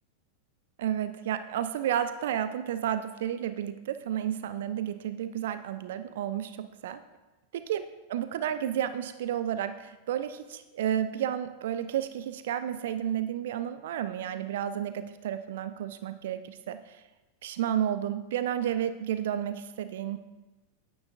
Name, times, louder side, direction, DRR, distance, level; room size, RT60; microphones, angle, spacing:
voice 1, 0.8-7.0 7.5-17.0 17.4-20.2, right 10 dB, 55° right, 11 dB, 0.3 m, -31 dB
9.4 x 8.7 x 2.5 m, 1.1 s
figure-of-eight pair, 90°, 0 cm